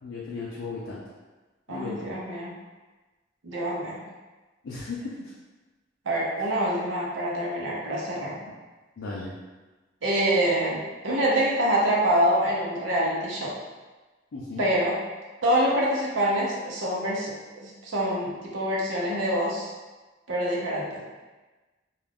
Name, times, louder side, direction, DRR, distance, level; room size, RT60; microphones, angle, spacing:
voice 1, 0.0-1.0 1.7-2.0 4.6-5.1 9.0-9.3 14.3-14.6, left 3 dB, 80° left, -5 dB, 0.4 m, -35 dB
voice 2, 1.7-2.5 3.4-4.0 6.1-8.5 10.0-13.5 14.6-15.0 15.4-17.3 17.6-19.7 20.3-21.0, right 1 dB, 85° right, -5 dB, 0.7 m, -25 dB
2.4 x 2.2 x 3.4 m, 1.2 s
head